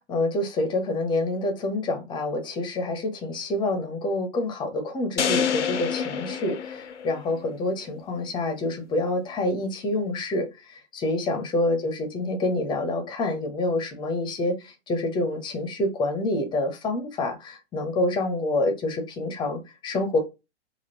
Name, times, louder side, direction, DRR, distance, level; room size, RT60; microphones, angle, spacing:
voice 1, 0.1-20.2, left 2 dB, 15° left, 0.6 m, -27 dB
sound 1, 5.2-7.5, left 7 dB, 85° left, 0.5 m, -27 dB
3.5 x 2.4 x 2.8 m
figure-of-eight pair, 110°, 35 cm